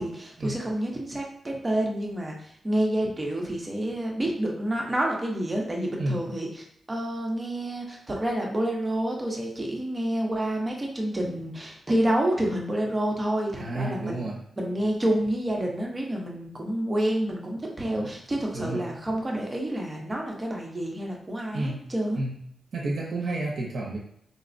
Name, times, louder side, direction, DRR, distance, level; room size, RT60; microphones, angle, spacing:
voice 1, 0.0-14.2 14.6-22.2, right 1 dB, 25° right, 0 dB, 0.7 m, -28 dB
voice 2, 13.6-14.4 17.8-18.1 18.5-18.8 21.5-21.8 22.1-22.4 22.7-24.0, right 2 dB, 65° right, -2 dB, 0.6 m, -31 dB
4.0 x 2.0 x 2.5 m, 0.70 s
cardioid pair, 90°, 0 cm